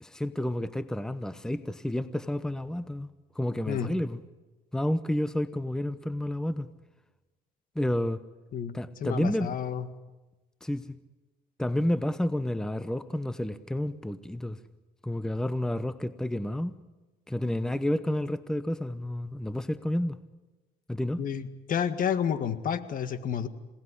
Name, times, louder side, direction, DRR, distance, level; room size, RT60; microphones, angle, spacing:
voice 1, 0.0-3.1 3.3-4.2 4.7-6.7 7.7-8.2 8.7-9.6 10.6-11.0 11.6-14.6 15.0-16.7 17.3-20.2 20.9-21.2, left 1 dB, 5° left, 12 dB, 0.9 m, -30 dB
voice 2, 9.0-9.9 21.2-23.5, left 8 dB, 55° left, 10 dB, 1.8 m, -30 dB
26.5 x 18.5 x 10.0 m, 1.2 s
cardioid pair, 110°, 17 cm